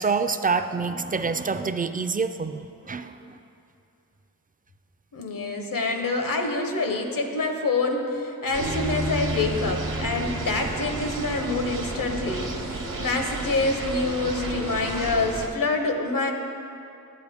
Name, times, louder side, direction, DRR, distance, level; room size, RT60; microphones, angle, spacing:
voice 1, 0.0-3.4, right 4 dB, 25° right, 9 dB, 0.4 m, -27 dB
voice 2, 5.1-16.3, left 3 dB, 75° left, 4 dB, 0.9 m, -26 dB
sound 1, 8.5-15.5, right 3 dB, 65° right, 1.1 m, -33 dB
Bass guitar, 8.6-14.8, right 1 dB, 90° right, 0.8 m, -35 dB
9.5 x 8.0 x 3.5 m, 2.7 s
cardioid pair, 50°, 34 cm